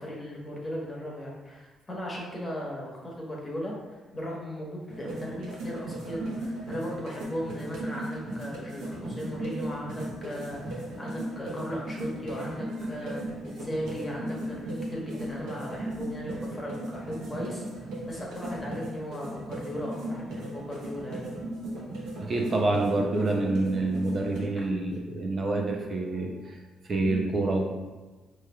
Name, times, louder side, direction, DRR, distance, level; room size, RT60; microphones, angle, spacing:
voice 1, 0.0-21.3 24.6-24.7, equal, 25° left, -3 dB, 1.1 m, -37 dB
sound 1, 4.9-24.4, right 1 dB, 90° right, 0.8 m, -37 dB
voice 2, 22.2-26.6 26.8-27.6, right 2 dB, 45° right, 1 dB, 0.5 m, -27 dB
4.7 x 3.0 x 2.3 m, 1.2 s
cardioid pair, 90°, 0 cm